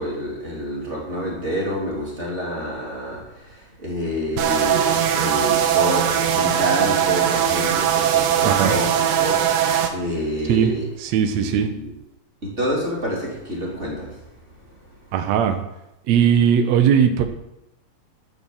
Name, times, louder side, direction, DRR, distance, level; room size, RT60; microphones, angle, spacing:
voice 1, 0.0-9.4 9.9-10.8 11.1-11.9 12.4-14.3 14.7-14.9, equal, 20° right, -4 dB, 3.7 m, -28 dB
sound 1, 4.4-9.9, right 9 dB, 85° right, 2.8 m, -20 dB
voice 2, 8.4-8.7 10.5-10.7 11.0-11.7 15.1-15.6 16.1-17.2, right 8 dB, 65° right, 7 dB, 2.0 m, -18 dB
13.0 x 7.1 x 7.3 m, 0.88 s
omnidirectional pair, 3.9 m